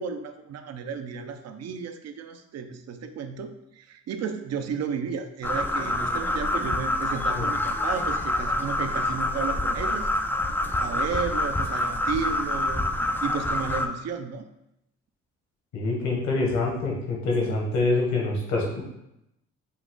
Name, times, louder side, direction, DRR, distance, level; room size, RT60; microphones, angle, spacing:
voice 1, 0.0-10.1 10.8-12.8 13.2-14.5, right 6 dB, 60° right, 7 dB, 0.6 m, -33 dB
sound 1, 5.4-13.9, left 1 dB, 5° left, 0.3 m, -27 dB
voice 2, 15.7-18.8, left 2 dB, 65° left, -1 dB, 1.3 m, -25 dB
5.6 x 2.4 x 3.7 m, 0.84 s
cardioid pair, 90°, 30 cm